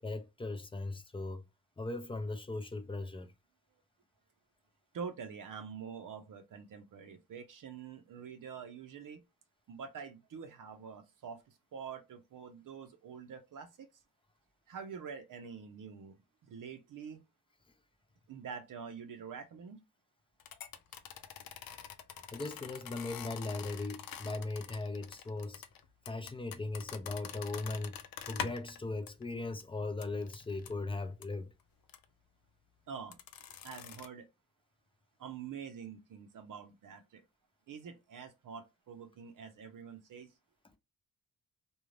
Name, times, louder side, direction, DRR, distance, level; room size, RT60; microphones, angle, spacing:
voice 1, 0.0-1.4 1.8-3.3 22.3-25.6 26.1-28.0 28.3-31.5, left 2 dB, 15° left, 0.5 m, -38 dB
voice 2, 4.9-9.2 9.7-14.0 14.7-17.2 18.3-19.8 32.9-33.2 33.6-34.3 35.2-37.2 37.7-40.3, right 6 dB, 60° right, 0.6 m, -46 dB
sound 1, 20.4-28.8 29.1-29.2 29.6-29.7 30.0-30.7 31.2-31.3 31.9-32.0 33.1-34.1, left 8 dB, 75° left, 0.5 m, -45 dB
2.5 x 2.3 x 3.1 m
cardioid pair, 100°, 35 cm